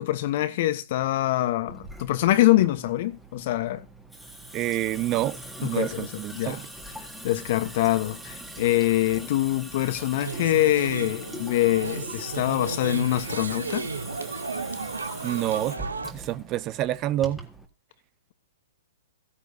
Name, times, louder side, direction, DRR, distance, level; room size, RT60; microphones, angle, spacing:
voice 1, 0.0-3.8 5.6-6.1 6.3-6.6 7.2-13.9, left 15 dB, 50° left, 1.1 m, -24 dB
Water tap faucet / Sink (filling or washing) / Drip, 1.7-17.7, right 1 dB, ahead, 1.9 m, -42 dB
voice 2, 4.5-6.7 15.2-15.8 16.1-17.4, right 13 dB, 30° right, 0.5 m, -28 dB
sound 1, 10.2-16.1, right 4 dB, 85° right, 0.9 m, -34 dB
15.5 x 9.8 x 2.8 m
hypercardioid pair, 120°, 0 cm